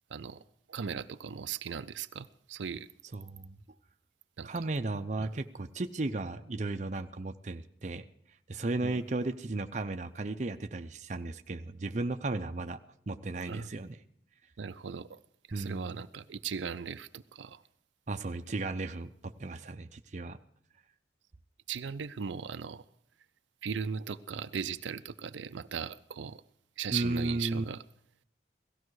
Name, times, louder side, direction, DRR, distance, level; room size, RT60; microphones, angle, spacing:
voice 1, 0.1-0.4 0.7-2.9 4.4-4.5 5.2-5.3 8.8-9.0 13.5-13.7 14.6-15.2 15.5-17.6 21.7-22.8 23.6-26.4 26.8-27.8, right 6 dB, 85° right, 12 dB, 0.5 m, -38 dB
voice 2, 3.1-3.6 4.4-8.0 8.5-12.8 13.1-14.0 15.5-16.0 18.1-20.4 26.9-27.6, right 2 dB, 40° right, 8 dB, 0.6 m, -35 dB
17.5 x 14.5 x 4.7 m, 0.67 s
head